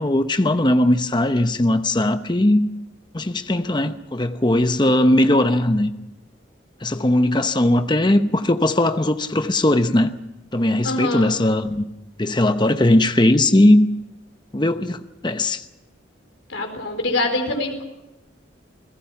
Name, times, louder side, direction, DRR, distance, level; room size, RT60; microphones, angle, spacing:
voice 1, 0.0-2.7 3.1-5.9 6.8-10.1 10.5-11.9 12.2-13.9 14.5-15.6, left 1 dB, 25° left, 0.8 m, -19 dB
voice 2, 10.8-11.3 16.5-17.8, left 2 dB, 85° left, 4.3 m, -24 dB
28.5 x 17.5 x 5.9 m
head